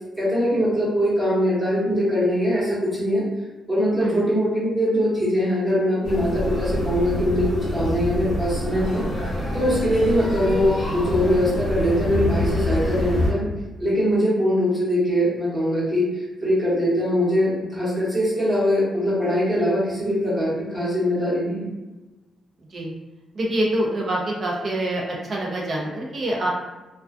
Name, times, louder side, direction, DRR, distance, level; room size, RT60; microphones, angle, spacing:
voice 1, 0.2-3.2 3.7-9.0 9.5-13.4 13.8-16.1 16.4-21.7, equal, 15° right, -9 dB, 1.1 m, -22 dB
voice 2, 4.0-4.3 22.7-22.9 23.3-26.5, right 1 dB, 40° right, -2 dB, 0.6 m, -25 dB
sound 1, 6.0-13.3, left 1 dB, 5° left, 1.0 m, -26 dB
2.4 x 2.2 x 2.4 m, 1.1 s
cardioid pair, 145°, 0 cm